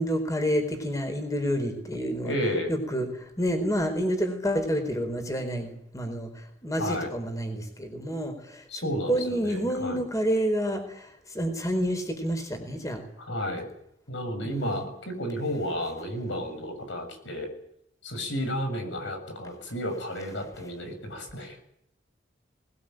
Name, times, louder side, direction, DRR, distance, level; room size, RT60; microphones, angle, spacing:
voice 1, 0.0-2.3 2.7-13.0 14.4-14.8, equal, 20° left, 5 dB, 4.5 m, -29 dB
voice 2, 2.2-2.8 6.8-7.1 8.7-10.0 13.3-13.7 14.1-17.5 18.0-21.6, equal, 85° left, 6 dB, 7.0 m, -32 dB
20.5 x 19.5 x 9.1 m, 0.77 s
head